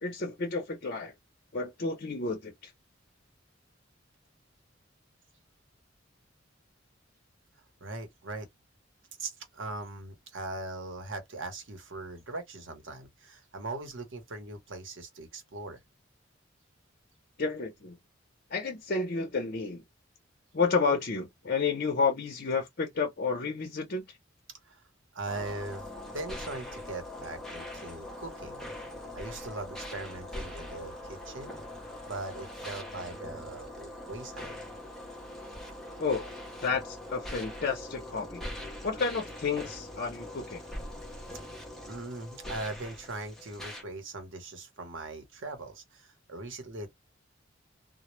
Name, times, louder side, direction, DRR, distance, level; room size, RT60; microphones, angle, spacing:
voice 1, 0.0-1.1 1.5-2.7 17.4-18.0 18.5-19.8 20.5-24.2 36.0-36.3 36.6-38.4 38.8-40.6, left 4 dB, 50° left, 0.6 m, -31 dB
voice 2, 7.8-8.5 9.2-15.8 24.7-24.8 25.1-28.6 29.1-31.6 32.0-34.6 41.9-46.9, right 2 dB, 75° right, 0.8 m, -40 dB
sound 1, 25.3-43.8, left 1 dB, ahead, 0.6 m, -42 dB
2.1 x 2.0 x 3.0 m
head